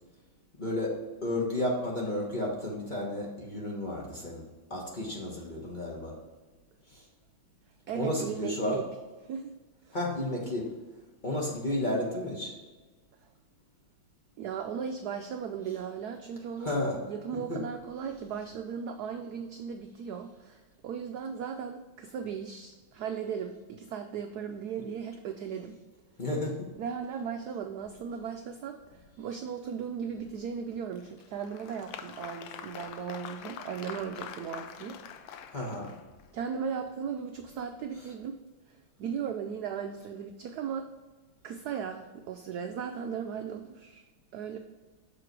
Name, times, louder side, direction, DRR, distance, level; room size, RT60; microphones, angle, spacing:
voice 1, 0.6-0.9 1.2-4.4 4.7-6.2 6.9-7.0 7.9-8.8 9.9-10.7 11.2-12.5 16.6-17.0 17.5-17.6 26.2-26.7 35.5-35.9, left 1 dB, 30° left, -3 dB, 1.1 m, -32 dB
voice 2, 7.9-8.8 9.2-9.5 9.8-10.0 14.4-16.8 17.1-25.8 26.8-35.5 36.3-38.4 38.7-40.8 41.4-44.0 44.3-44.6, right 7 dB, 80° right, 5 dB, 0.8 m, -37 dB
Applause, 30.9-36.3, left 8 dB, 75° left, 1.3 m, -44 dB
6.7 x 4.9 x 4.6 m, 1.2 s
omnidirectional pair, 2.2 m